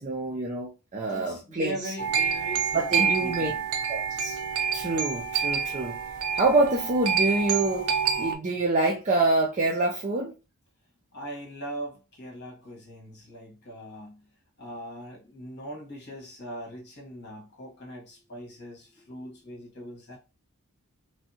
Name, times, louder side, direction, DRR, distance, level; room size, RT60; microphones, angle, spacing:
voice 1, 0.0-1.9 2.7-3.5 3.9-4.4 4.7-6.0 6.3-7.9 8.1-10.3, right 2 dB, 30° right, 0.5 m, -26 dB
voice 2, 1.1-3.6 11.1-14.3 14.6-20.2, equal, 50° left, 1.3 m, -40 dB
sound 1, 2.0-8.3, right 7 dB, 75° right, 0.6 m, -27 dB
3.0 x 2.7 x 2.7 m
head